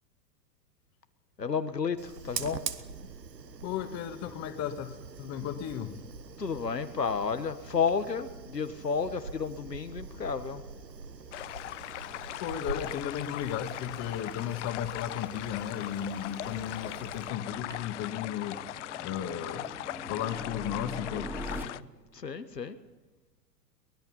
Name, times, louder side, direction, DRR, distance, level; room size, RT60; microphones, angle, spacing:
voice 1, 1.4-2.6 6.4-10.6 16.7-16.9 21.8-21.9 22.1-22.8, left 6 dB, 85° left, 10 dB, 1.6 m, -32 dB
Fire, 2.0-18.1, right 5 dB, 85° right, 1.3 m, -44 dB
voice 2, 3.6-6.0 12.0-21.3, left 10 dB, 35° left, 8 dB, 1.8 m, -35 dB
sound 1, 11.3-21.8, left 16 dB, 50° left, 0.6 m, -40 dB
sound 2, 11.8-21.6, equal, 5° right, 2.2 m, -46 dB
23.5 x 20.0 x 5.6 m, 1.3 s
figure-of-eight pair, 95°, 48 cm